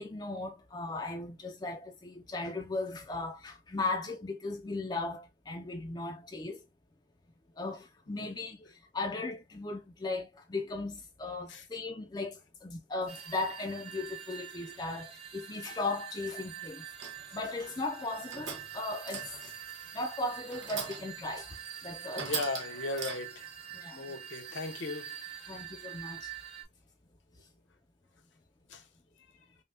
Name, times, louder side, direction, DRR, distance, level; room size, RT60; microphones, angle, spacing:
voice 1, 0.0-6.7 7.6-16.8 17.3-19.4 19.9-22.3 23.7-24.2 25.5-26.3, left 3 dB, 20° left, 0.4 m, -37 dB
sound 1, 13.1-26.6, right 10 dB, 55° right, 1.5 m, -45 dB
sound 2, 17.0-17.3 18.0-18.8 19.1-19.6 20.5-21.2 21.6-21.7 22.1-23.5, right 6 dB, 80° right, 1.0 m, -40 dB
voice 2, 22.2-23.5 24.0-25.1 28.7-28.8, left 3 dB, 80° left, 0.9 m, -37 dB
5.4 x 2.2 x 2.6 m
head